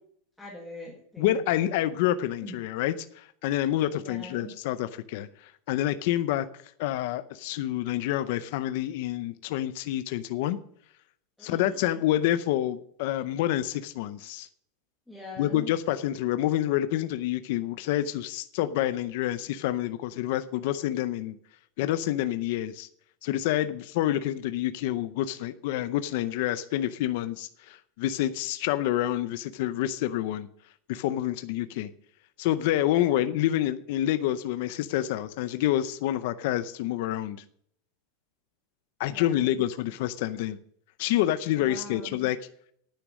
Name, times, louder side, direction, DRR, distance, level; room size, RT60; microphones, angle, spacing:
voice 1, 0.4-1.7 2.4-2.5 4.0-4.5 11.4-12.0 15.1-15.7 32.9-33.2 39.1-39.7 41.6-42.3, left 1 dB, 5° left, -4 dB, 1.6 m, -43 dB
voice 2, 1.2-6.5 6.8-10.6 11.4-14.5 15.4-21.4 21.8-22.9 23.2-30.5 30.9-31.9 32.4-37.4 39.0-40.6 41.0-42.4, left 13 dB, 50° left, 11 dB, 0.6 m, -28 dB
9.9 x 9.3 x 6.3 m, 0.66 s
supercardioid pair, 175°, 0 cm